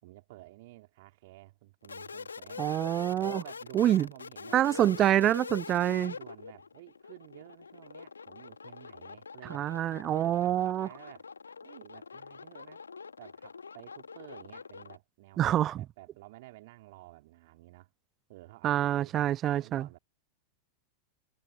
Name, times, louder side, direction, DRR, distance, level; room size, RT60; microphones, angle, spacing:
voice 1, 0.0-2.6 3.2-5.2 5.7-9.7 10.1-11.3 11.6-12.8 13.2-17.9 18.3-20.0, right 19 dB, 50° right, 3.8 m, -52 dB
sound 1, 1.8-15.0, left 5 dB, 75° left, 2.1 m, -44 dB
voice 2, 2.6-3.4 3.7-4.1 4.5-6.1 9.5-10.9 15.4-15.8 18.6-19.9, right 12 dB, 30° right, 0.4 m, -26 dB
figure-of-eight pair, 90°, 0 cm